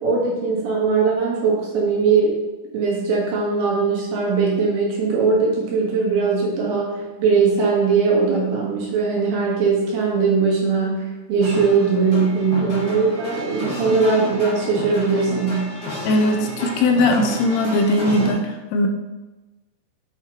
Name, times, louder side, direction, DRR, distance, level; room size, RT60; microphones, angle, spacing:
voice 1, 0.0-2.4 2.7-15.7, right 4 dB, 70° right, -3 dB, 3.4 m, -20 dB
sound 1, 11.4-18.3, left 1 dB, 35° left, 1.1 m, -31 dB
voice 2, 16.0-18.9, left 1 dB, 85° left, 3 dB, 2.7 m, -19 dB
8.0 x 5.6 x 3.0 m, 1.1 s
omnidirectional pair, 4.8 m